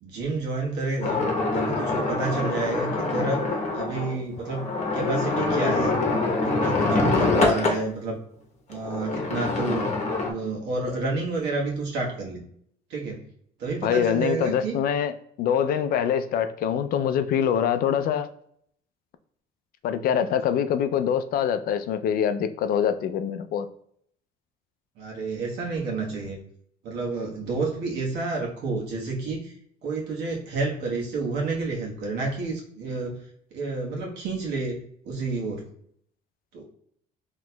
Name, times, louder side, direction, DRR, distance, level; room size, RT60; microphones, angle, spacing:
voice 1, 0.0-1.2 1.5-3.4 3.7-5.9 6.4-8.2 8.7-9.9 10.3-12.4 12.9-13.3 13.6-14.8 25.0-26.4 26.8-33.2 33.5-35.7 36.5-36.6, right 3 dB, 80° right, -2 dB, 1.2 m, -29 dB
sound 1, 1.0-7.8 8.7-10.3, left 3 dB, 40° left, 0.9 m, -25 dB
voice 2, 13.8-15.1 15.4-18.3 19.8-23.7, left 8 dB, 60° left, 10 dB, 0.4 m, -24 dB
4.1 x 2.9 x 2.2 m, 0.67 s
cardioid pair, 110°, 17 cm